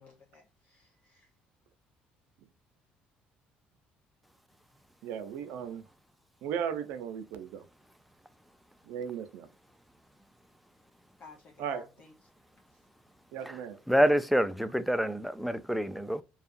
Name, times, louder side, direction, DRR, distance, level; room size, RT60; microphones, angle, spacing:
voice 1, 0.0-1.4 11.2-12.3 12.7-12.9, left 4 dB, 45° left, 0.7 m, -56 dB
voice 2, 5.0-5.8 6.4-7.6 8.8-9.5 11.6-11.9 13.3-13.8, right 8 dB, 80° right, 0.5 m, -36 dB
voice 3, 13.9-16.2, equal, ahead, 0.3 m, -27 dB
2.6 x 2.4 x 2.5 m
cardioid pair, 105°, 3 cm